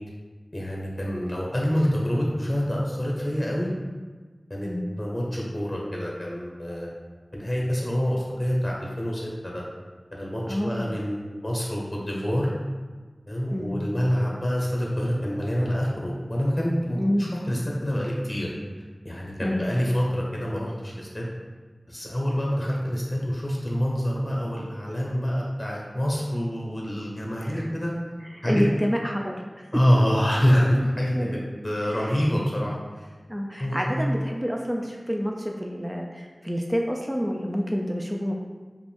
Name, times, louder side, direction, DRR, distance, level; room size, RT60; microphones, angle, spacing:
voice 1, 0.5-3.7 4.5-4.7 5.0-6.9 7.3-9.6 10.1-12.5 13.3-18.5 19.0-21.3 21.9-27.9 28.4-28.6 29.7-33.1 33.6-33.9, equal, 25° left, -3 dB, 0.9 m, -26 dB
voice 2, 10.5-10.9 13.5-13.8 17.0-17.3 19.4-19.6 27.4-27.8 28.3-29.7 31.1-31.3 31.9-32.2 33.3-38.3, equal, 10° right, 0 dB, 0.4 m, -28 dB
5.0 x 2.5 x 3.4 m, 1.4 s
wide cardioid pair, 45°, 0 cm